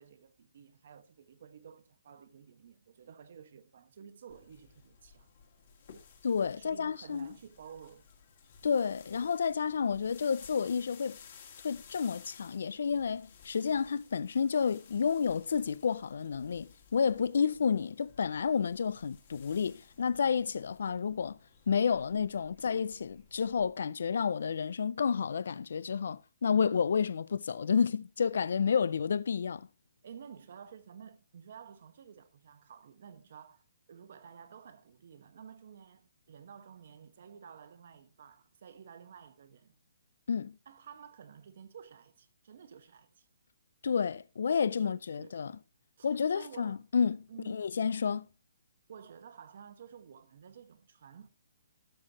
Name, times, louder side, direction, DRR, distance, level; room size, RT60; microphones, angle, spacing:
voice 1, 0.0-5.3 6.6-8.1 17.4-17.5 30.0-39.8 40.7-43.3 44.8-45.4 46.0-46.8 47.3-47.6 48.9-51.3, right 7 dB, 50° right, 0.9 m, -52 dB
sound 1, 4.3-23.7, left 6 dB, 40° left, 1.8 m, -57 dB
voice 2, 6.2-7.3 8.6-11.2 11.6-21.4 21.7-29.7 40.3-40.6 43.8-45.6 46.0-48.3, left 6 dB, 60° left, 0.3 m, -30 dB
12.5 x 6.4 x 2.8 m
hypercardioid pair, 170°, 0 cm